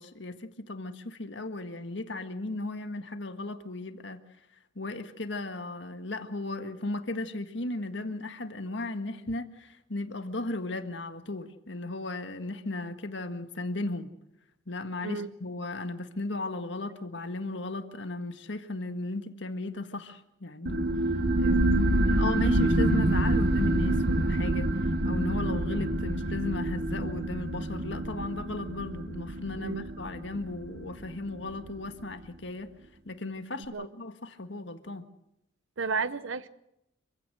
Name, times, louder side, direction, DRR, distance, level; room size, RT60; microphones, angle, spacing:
voice 1, 0.0-4.2 4.8-14.1 14.7-20.9 21.4-32.7 33.1-35.1, left 2 dB, 70° left, 1.7 m, -36 dB
sound 1, 20.7-31.8, right 1 dB, 55° right, 1.2 m, -27 dB
voice 2, 29.6-29.9 33.7-33.9 35.8-36.5, right 4 dB, 85° right, 0.9 m, -32 dB
26.5 x 16.0 x 7.9 m
head